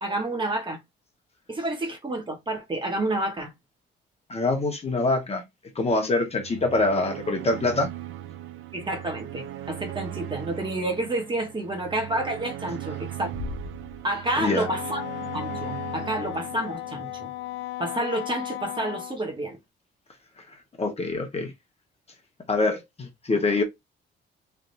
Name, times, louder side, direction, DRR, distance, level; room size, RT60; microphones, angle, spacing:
voice 1, 0.0-0.8 1.5-3.5 8.7-13.3 14.0-15.0 15.3-17.3 17.8-19.6, right 1 dB, 25° right, 1.2 m, -29 dB
voice 2, 4.3-5.4 5.7-7.9 14.4-14.6 20.8-21.5 22.5-23.6, left 2 dB, 30° left, 1.2 m, -24 dB
sound 1, 6.3-17.6, right 12 dB, 85° right, 0.5 m, -39 dB
sound 2, 13.3-14.8, left 3 dB, 50° right, 1.1 m, -38 dB
Wind instrument woodwind instrument, 14.6-19.2, left 17 dB, 65° left, 0.5 m, -35 dB
3.4 x 2.7 x 2.6 m
cardioid pair, 90°, 20 cm